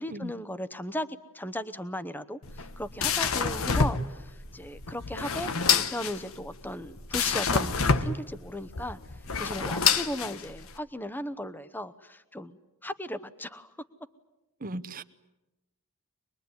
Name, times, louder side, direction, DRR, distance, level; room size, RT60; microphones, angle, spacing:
voice 1, 0.0-9.0 9.4-13.7, left 1 dB, 10° left, 13 dB, 0.9 m, -37 dB
sound 1, 2.4-10.8, left 5 dB, 70° left, 1.2 m, -28 dB
voice 2, 14.6-15.0, right 1 dB, 40° right, 13 dB, 0.9 m, -36 dB
24.5 x 22.0 x 9.6 m, 0.97 s
head